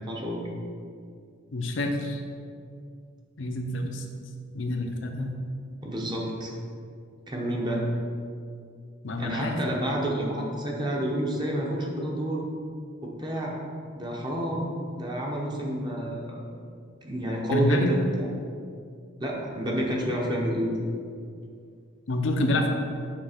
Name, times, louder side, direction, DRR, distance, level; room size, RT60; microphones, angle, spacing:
voice 1, 0.1-0.4 5.8-6.5 7.3-7.9 9.2-12.4 13.0-13.5 13.9-16.4 17.0-18.3 19.2-20.7, right 1 dB, 20° right, -2 dB, 0.8 m, -29 dB
voice 2, 1.5-2.2 3.4-4.0 4.5-5.3 9.0-9.6 17.5-17.9 22.1-22.7, left 2 dB, 65° left, 4 dB, 0.6 m, -27 dB
6.7 x 3.3 x 5.0 m, 2.3 s
head